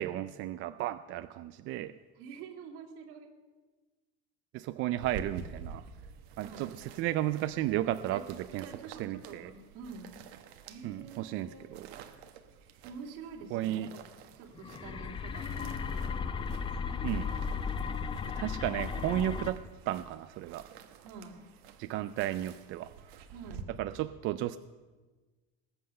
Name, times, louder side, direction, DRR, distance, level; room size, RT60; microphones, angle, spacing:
voice 1, 0.0-2.0 4.5-5.8 6.4-8.7 9.0-9.5 10.8-11.9 13.5-13.9 17.0-17.3 18.3-19.6 19.9-20.7 21.8-22.9 23.8-24.6, right 13 dB, 40° right, 12 dB, 0.4 m, -33 dB
voice 2, 2.2-3.3 6.4-6.7 8.1-8.3 8.6-10.1 10.7-11.7 12.8-14.0 14.4-16.2 21.0-21.4 23.3-23.7, right 5 dB, 65° right, 2 dB, 2.7 m, -47 dB
sound 1, 5.0-23.6, right 6 dB, 85° right, 1.4 m, -50 dB
sound 2, 14.5-19.5, left 6 dB, 15° left, 0.5 m, -35 dB
20.0 x 7.8 x 6.6 m, 1.3 s
cardioid pair, 150°, 31 cm